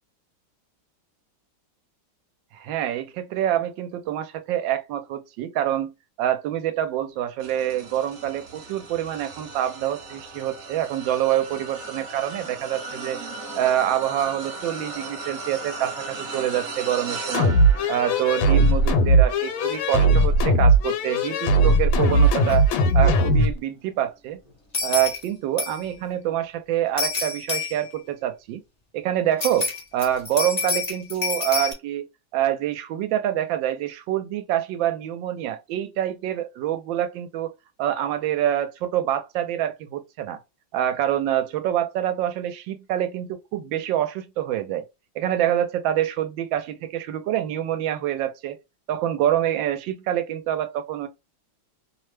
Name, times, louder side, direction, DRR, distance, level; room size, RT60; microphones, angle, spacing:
voice 1, 2.5-13.2 13.6-17.5 17.9-22.7 22.9-24.4 24.8-28.6 28.9-32.1 32.3-37.5 37.8-40.4 40.7-44.8 45.2-48.6 48.9-51.1, right 11 dB, 75° right, 1.2 m, -26 dB
sound 1, 7.4-22.9 23.4-23.7 24.9-25.0, right 3 dB, 55° right, 1.1 m, -38 dB
sound 2, 17.3-23.5, right 1 dB, 75° left, 1.4 m, -19 dB
sound 3, 22.5-22.6 22.9-23.0 24.7-25.2 25.6-25.9 27.0-28.0 29.4-31.7, left 4 dB, 45° left, 0.5 m, -28 dB
3.2 x 2.1 x 3.1 m
omnidirectional pair, 2.2 m